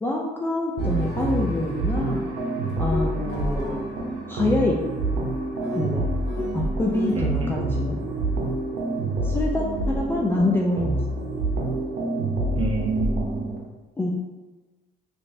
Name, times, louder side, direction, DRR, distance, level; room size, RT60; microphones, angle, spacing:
voice 1, 0.0-2.2 2.8-3.8 4.3-4.8 5.7-6.1 6.5-8.0 9.2-11.0 14.0-14.1, left 1 dB, 15° left, -1 dB, 0.3 m, -25 dB
sound 1, 0.8-1.3 2.7-7.3, left 3 dB, 75° left, 0.9 m, -36 dB
sound 2, 0.8-13.6, right 2 dB, 70° right, 0.8 m, -27 dB
voice 2, 7.1-7.6 12.5-13.5, right 2 dB, 30° right, -2 dB, 0.8 m, -28 dB
3.0 x 2.7 x 3.3 m, 1.2 s
cardioid pair, 110°, 17 cm